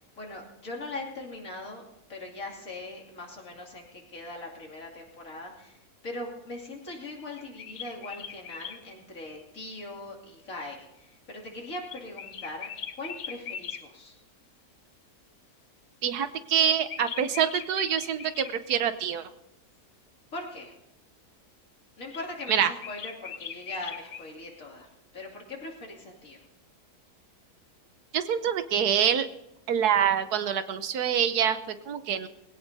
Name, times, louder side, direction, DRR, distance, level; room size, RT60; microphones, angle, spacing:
voice 1, 0.0-1.8 2.1-12.7 13.0-14.2 20.3-20.7 22.0-26.4, left 2 dB, 60° left, -2 dB, 3.0 m, -40 dB
sound 1, 7.3-8.8 11.9-13.8 16.6-18.5 22.1-24.3, left 7 dB, 75° left, 1.4 m, -40 dB
voice 2, 16.0-19.3 22.5-22.7 28.1-29.3 29.7-32.3, right 8 dB, 80° right, 11 dB, 1.4 m, -26 dB
20.5 x 17.0 x 2.7 m, 0.91 s
omnidirectional pair, 1.6 m